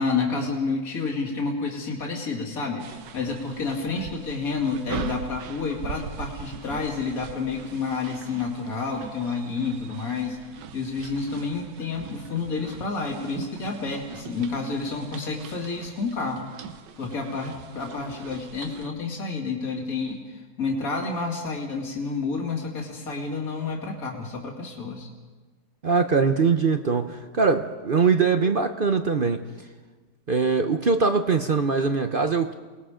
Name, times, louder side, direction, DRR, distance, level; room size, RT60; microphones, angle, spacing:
voice 1, 0.0-10.4 10.7-16.5 17.0-25.1, left 4 dB, 55° left, 0 dB, 2.9 m, -29 dB
sound 1, 2.8-18.9, right 8 dB, 80° right, 1.6 m, -41 dB
voice 2, 25.8-29.4 30.3-32.5, right 5 dB, 45° right, 8 dB, 0.7 m, -22 dB
28.5 x 20.0 x 5.1 m, 1.4 s
omnidirectional pair, 1.9 m